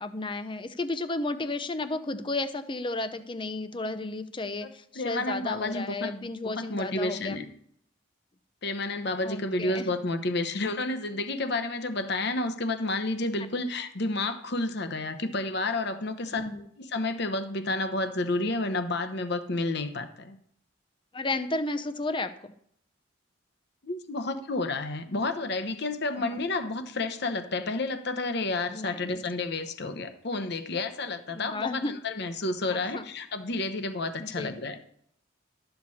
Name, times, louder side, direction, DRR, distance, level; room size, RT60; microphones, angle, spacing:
voice 1, 0.0-7.4 9.2-9.9 16.3-16.6 21.1-22.5 26.2-26.4 28.7-29.2 31.3-31.9 32.7-33.0 34.2-34.5, left 2 dB, 25° left, 11 dB, 0.6 m, -33 dB
voice 2, 5.0-6.1 6.4-7.5 8.6-16.5 16.8-20.4 23.8-34.8, left 2 dB, 55° left, 8 dB, 0.9 m, -30 dB
12.5 x 6.8 x 4.2 m, 0.67 s
head